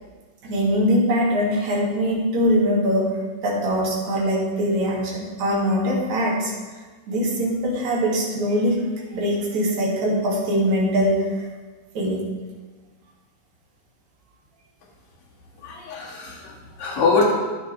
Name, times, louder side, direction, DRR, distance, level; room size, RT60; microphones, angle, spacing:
voice 1, 0.4-6.5 7.1-8.8 9.1-11.3 12.0-12.3, equal, 55° right, -6 dB, 3.7 m, -22 dB
voice 2, 15.6-17.3, left 3 dB, 55° left, -5 dB, 3.4 m, -23 dB
12.5 x 9.8 x 3.4 m, 1.3 s
omnidirectional pair, 4.0 m